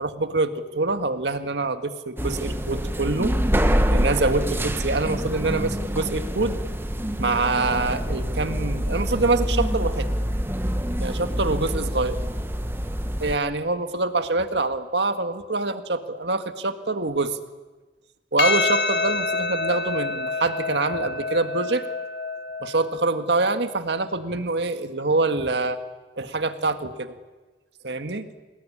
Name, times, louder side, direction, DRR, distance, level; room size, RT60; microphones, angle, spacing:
voice 1, 0.0-3.4 3.9-6.6 7.2-10.1 11.0-12.2 13.2-17.4 18.3-21.8 22.6-25.8 26.2-27.1 27.8-28.3, right 3 dB, 75° right, 8 dB, 1.8 m, -25 dB
sound 1, 2.2-13.4, equal, 15° right, 1.2 m, -26 dB
Percussion, 18.4-23.0, left 3 dB, 70° left, 1.8 m, -27 dB
27.0 x 20.0 x 9.9 m, 1.2 s
head